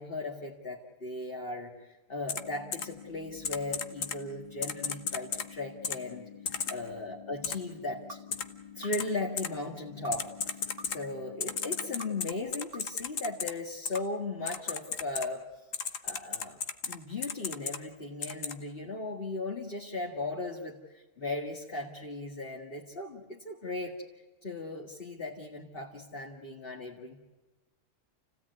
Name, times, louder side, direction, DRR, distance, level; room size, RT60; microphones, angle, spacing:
voice 1, 0.0-6.3 6.7-8.2 8.7-10.6 10.9-15.5 16.0-16.6 16.9-23.9 24.4-27.2, left 2 dB, 45° left, -1 dB, 2.3 m, -37 dB
Typing, 2.3-2.4 2.7-2.8 3.4-4.2 4.6-5.5 5.8-6.0 6.5-6.7 7.4-7.5 8.3-8.4 8.9-9.0 9.4-9.5 10.1-11.0 11.4-13.5 13.9-14.0 14.5-15.3 15.7-17.0 17.2-17.8 18.2-18.5, left 6 dB, 80° left, 1.6 m, -33 dB
sound 1, 2.3-12.3, left 8 dB, 25° left, 2.3 m, -50 dB
sound 2, 8.1-8.2 8.8-9.3 10.0-10.1 10.8-11.3 12.0-12.1 12.7-13.2 13.9-14.0 14.7-15.2, right 2 dB, 70° right, 1.7 m, -44 dB
29.5 x 16.5 x 9.5 m, 1.2 s
omnidirectional pair, 1.3 m